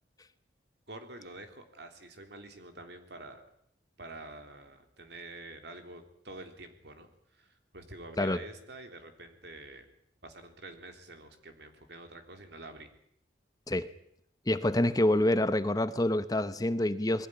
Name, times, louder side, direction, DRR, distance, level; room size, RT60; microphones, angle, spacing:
voice 1, 0.9-3.4 4.0-9.9 10.2-12.9, right 2 dB, 60° right, 6 dB, 3.4 m, -47 dB
voice 2, 14.5-17.3, left 1 dB, 20° left, 12 dB, 0.8 m, -27 dB
22.0 x 16.0 x 10.0 m, 0.72 s
head